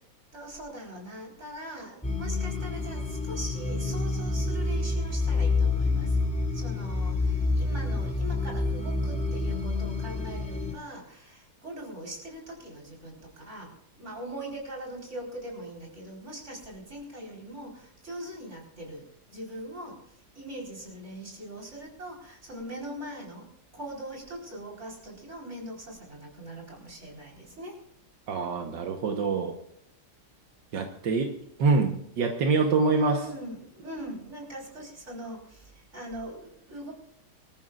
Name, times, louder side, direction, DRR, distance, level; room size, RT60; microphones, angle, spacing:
voice 1, 0.3-6.2 6.5-19.0 19.3-20.0 20.3-23.5 23.7-27.8 32.9-36.9, right 1 dB, 40° right, -2 dB, 4.7 m, -41 dB
sound 1, 2.0-10.7, left 3 dB, 5° left, 2.8 m, -28 dB
voice 2, 28.3-29.6 30.7-33.2, right 4 dB, 80° right, 3 dB, 1.8 m, -25 dB
25.0 x 14.0 x 2.5 m, 0.74 s
omnidirectional pair, 1.9 m